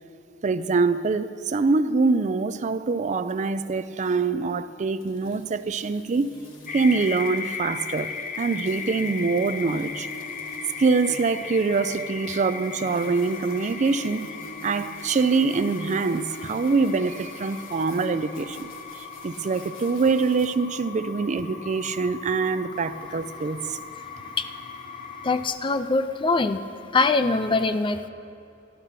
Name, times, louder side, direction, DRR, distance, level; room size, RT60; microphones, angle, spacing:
voice 1, 0.4-6.3 6.7-10.1 10.8-14.3 14.6-23.8, right 4 dB, 40° right, 0.4 m, -24 dB
sound 1, 5.0-20.5, equal, 85° left, 1.7 m, -46 dB
sound 2, 6.7-25.5, left 6 dB, 45° left, 0.9 m, -37 dB
voice 2, 25.2-26.6 26.9-28.1, left 3 dB, 25° left, 0.5 m, -23 dB
13.5 x 12.0 x 5.8 m
head